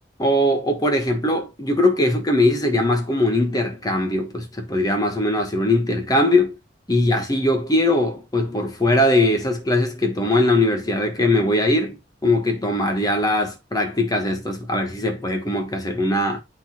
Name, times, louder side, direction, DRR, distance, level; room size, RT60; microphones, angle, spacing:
voice 1, 0.2-6.5 6.9-12.0 12.2-16.4, left 1 dB, 20° left, 1.3 m, -20 dB
11.5 x 4.1 x 2.9 m
head